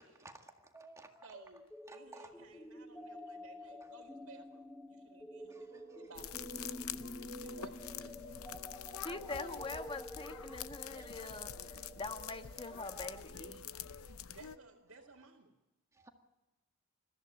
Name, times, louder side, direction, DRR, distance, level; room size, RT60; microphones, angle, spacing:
voice 1, 0.0-1.3 1.9-2.3 5.5-6.1 10.8-11.1 14.0-14.1 15.9-16.1, right 2 dB, 15° right, 4 dB, 1.9 m, -56 dB
voice 2, 1.2-1.6 1.9-6.3 7.3-8.2 9.4-9.7 14.3-15.5, right 4 dB, 70° right, -3 dB, 2.2 m, -57 dB
sound 1, 1.3-13.2, left 1 dB, 5° left, 1.1 m, -50 dB
sound 2, 5.7-15.1, right 1 dB, 45° right, 0.9 m, -56 dB
light music box sounds a rattle crinkly toys, 6.1-14.6, left 9 dB, 75° left, 0.7 m, -46 dB
voice 3, 9.0-13.7, left 3 dB, 25° left, 7 dB, 1.4 m, -44 dB
21.5 x 14.5 x 9.0 m, 1.0 s
head